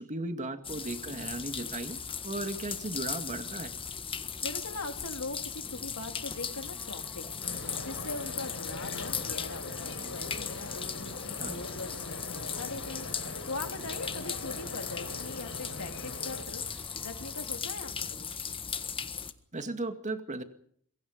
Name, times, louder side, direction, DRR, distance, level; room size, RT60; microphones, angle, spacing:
voice 1, 0.0-3.7 11.4-11.6 19.5-20.4, right 2 dB, 35° right, 8 dB, 2.2 m, -36 dB
sound 1, 0.6-19.3, left 6 dB, 25° left, 1.5 m, -38 dB
voice 2, 4.4-7.4 7.8-13.1 13.5-18.3, left 3 dB, 80° left, 6 dB, 3.1 m, -41 dB
sound 2, 5.7-17.6, equal, 5° left, 5.8 m, -58 dB
sound 3, 7.4-16.4, left 2 dB, 60° left, 5.8 m, -42 dB
26.5 x 23.0 x 5.2 m, 0.63 s
head